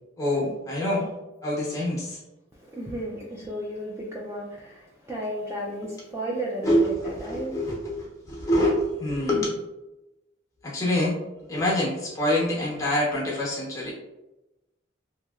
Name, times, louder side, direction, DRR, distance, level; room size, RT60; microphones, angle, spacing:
voice 1, 0.2-1.1 1.4-2.2 5.8-5.9 6.6-9.6 10.6-11.2 11.5-13.9, left 1 dB, 15° left, -4 dB, 0.9 m, -25 dB
voice 2, 2.6-6.8 7.0-7.6, right 1 dB, 15° right, -4 dB, 0.3 m, -34 dB
3.0 x 2.8 x 2.3 m, 0.97 s
head